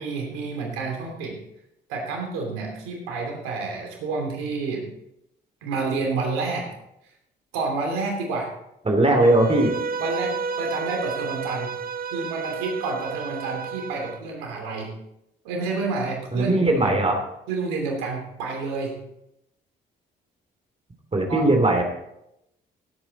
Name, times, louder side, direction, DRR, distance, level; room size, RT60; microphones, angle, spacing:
voice 1, 0.0-1.4 1.9-4.9 5.6-6.7 7.5-8.5 9.1-9.2 10.0-11.7 12.1-14.9 15.4-17.0 17.5-19.0 21.3-21.4, right 3 dB, 85° right, 1 dB, 3.0 m, -29 dB
voice 2, 8.8-9.7 16.3-17.2 21.1-21.8, right 2 dB, 30° right, 3 dB, 3.0 m, -19 dB
Bowed string instrument, 9.2-14.2, right 5 dB, 45° right, 1.1 m, -31 dB
17.0 x 8.6 x 4.1 m, 0.83 s
hypercardioid pair, 50°, 21 cm